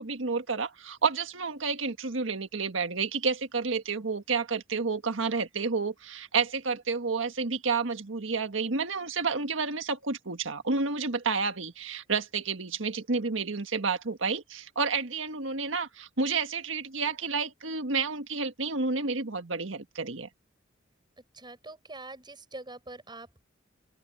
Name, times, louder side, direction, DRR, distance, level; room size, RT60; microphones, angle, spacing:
voice 1, 0.0-20.3, right 4 dB, 90° right, 1.6 m, -30 dB
voice 2, 21.3-23.5, right 2 dB, 25° right, 7.2 m, -44 dB
open air
head